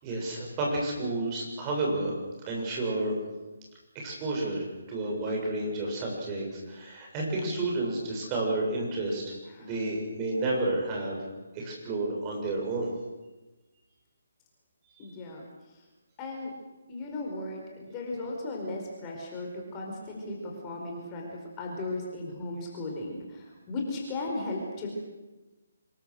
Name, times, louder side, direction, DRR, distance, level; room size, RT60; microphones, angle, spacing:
voice 1, 0.0-2.1 2.5-3.1 3.9-11.2 11.5-12.9 15.0-15.1, right 2 dB, 20° right, -2 dB, 7.3 m, -31 dB
voice 2, 15.0-15.4 16.2-16.5 16.9-21.3 21.6-24.9, left 2 dB, 20° left, 0 dB, 5.0 m, -36 dB
26.0 x 22.0 x 6.5 m, 1.1 s
figure-of-eight pair, 145°, 0 cm